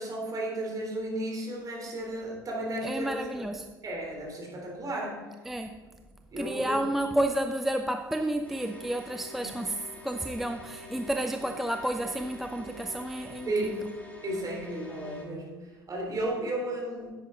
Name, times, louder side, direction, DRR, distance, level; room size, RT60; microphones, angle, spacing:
voice 1, 0.0-3.4 3.8-5.2 6.3-6.9 9.4-9.5 13.5-13.8 14.2-17.1, right 1 dB, 35° right, -1 dB, 3.6 m, -34 dB
voice 2, 2.8-3.7 5.5-5.8 6.4-13.9, right 1 dB, ahead, 6 dB, 0.5 m, -31 dB
sound 1, 8.4-15.2, equal, 15° left, 2.4 m, -47 dB
11.0 x 8.4 x 3.9 m, 1.3 s
figure-of-eight pair, 60°, 11 cm